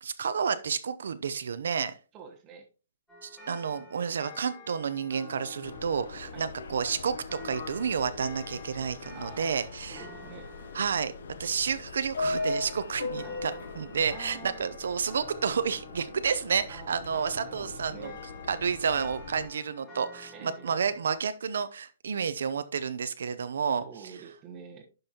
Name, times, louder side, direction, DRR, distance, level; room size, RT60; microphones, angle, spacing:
voice 1, 0.0-1.9 3.2-10.0 10.7-11.1 11.4-18.1 18.5-23.8, right 6 dB, 75° right, 12 dB, 0.6 m, -30 dB
voice 2, 2.1-2.7 6.3-6.5 9.1-9.6 9.9-10.5 13.2-13.4 14.1-14.7 16.7-18.2 20.3-20.7 23.8-24.8, right 6 dB, 20° right, 3 dB, 1.1 m, -47 dB
sound 1, 3.1-21.1, left 2 dB, 10° left, 2.5 m, -50 dB
Subway metro underground, 5.6-19.5, left 3 dB, 75° left, 1.0 m, -40 dB
11.0 x 5.3 x 2.8 m, 0.34 s
hypercardioid pair, 170°, 0 cm